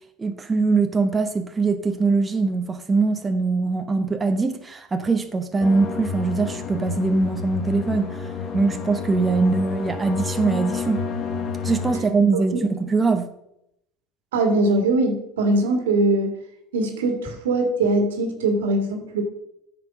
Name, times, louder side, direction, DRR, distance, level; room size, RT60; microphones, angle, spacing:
voice 1, 0.2-8.3 8.5-11.0 11.6-13.3, right 3 dB, 20° right, 6 dB, 1.0 m, -22 dB
sound 1, 5.6-12.0, left 5 dB, 55° left, 1.4 m, -30 dB
voice 2, 14.3-16.4 16.7-19.2, right 2 dB, 90° right, 4 dB, 2.0 m, -21 dB
9.3 x 5.1 x 6.1 m, 0.80 s
hypercardioid pair, 90°, 0 cm